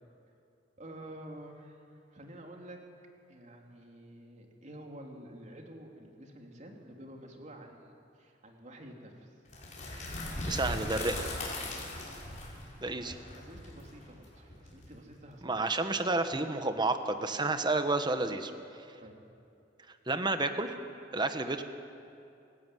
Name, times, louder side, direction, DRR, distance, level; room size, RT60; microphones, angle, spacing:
voice 1, 0.8-2.8 3.3-7.9 8.2-9.3 12.9-15.6 19.0-19.2, right 1 dB, 40° right, 1 dB, 3.3 m, -49 dB
sound 1, 9.5-15.3, left 1 dB, 45° left, 6.4 m, -39 dB
voice 2, 10.5-11.2 12.8-13.1 15.4-18.5 20.1-20.7 21.1-21.6, right 2 dB, 25° right, 8 dB, 1.3 m, -30 dB
29.0 x 16.5 x 9.4 m, 2.6 s
head